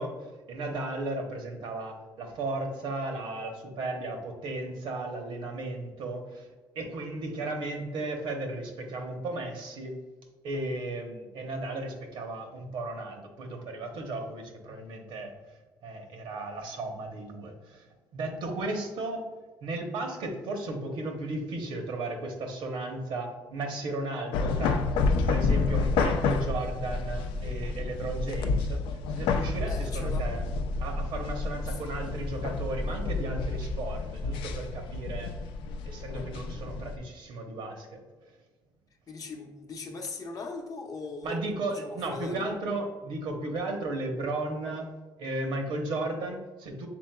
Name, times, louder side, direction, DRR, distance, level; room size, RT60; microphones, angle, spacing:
voice 1, 0.0-6.5 6.7-9.9 10.4-15.3 15.8-17.9 18.1-19.3 19.6-24.8 25.3-30.5 30.8-35.3 35.8-38.3 41.2-44.9 45.2-46.9, right 2 dB, 70° right, 4 dB, 0.8 m, -35 dB
sound 1, 24.3-37.0, left 4 dB, 85° left, 0.4 m, -29 dB
voice 2, 29.6-30.3 31.7-31.8 39.1-41.5 41.8-42.5, left 3 dB, 45° left, 3 dB, 0.7 m, -39 dB
6.1 x 3.6 x 2.2 m, 1.3 s
cardioid pair, 120°, 9 cm